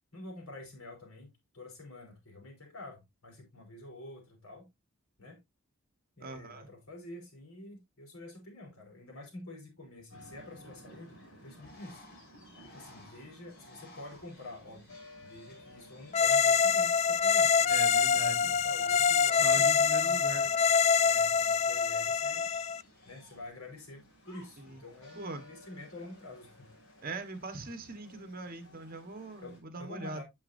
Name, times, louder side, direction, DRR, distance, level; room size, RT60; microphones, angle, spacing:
voice 1, 0.1-4.7 5.2-5.4 6.2-12.0 12.6-14.9 15.2-17.7 18.2-20.5 21.0-22.5 23.0-26.7 29.4-30.2, left 2 dB, 85° left, 4.5 m, -48 dB
voice 2, 6.2-6.7 17.7-18.5 19.4-20.6 24.6-24.8 25.1-25.4 27.0-30.2, right 2 dB, 45° right, 1.5 m, -41 dB
sound 1, 10.1-29.6, left 1 dB, 65° left, 5.5 m, -56 dB
Bird, 11.5-23.5, left 2 dB, 45° left, 3.0 m, -59 dB
sound 2, 16.1-22.8, left 6 dB, 30° left, 0.3 m, -25 dB
8.6 x 7.5 x 2.7 m
head